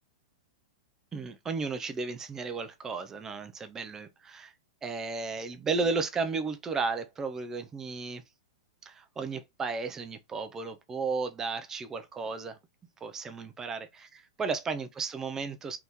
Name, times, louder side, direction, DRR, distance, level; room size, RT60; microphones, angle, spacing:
voice 1, 1.1-4.5 4.8-8.2 8.8-12.6 13.0-15.8, right 4 dB, 15° right, 0.5 m, -34 dB
4.0 x 3.4 x 3.0 m
hypercardioid pair, 145°, 3 cm